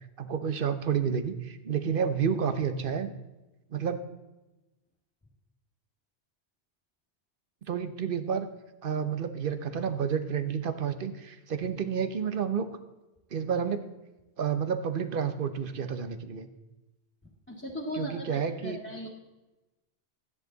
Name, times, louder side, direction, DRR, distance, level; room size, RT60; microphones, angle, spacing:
voice 1, 0.2-3.1 3.7-4.0 7.7-8.5 8.8-12.7 13.3-13.8 14.4-16.5 17.9-18.8, right 7 dB, 55° right, 10 dB, 1.0 m, -30 dB
voice 2, 17.5-19.1, equal, 10° left, -6 dB, 1.8 m, -38 dB
13.5 x 9.9 x 3.9 m, 1.1 s
omnidirectional pair, 1.1 m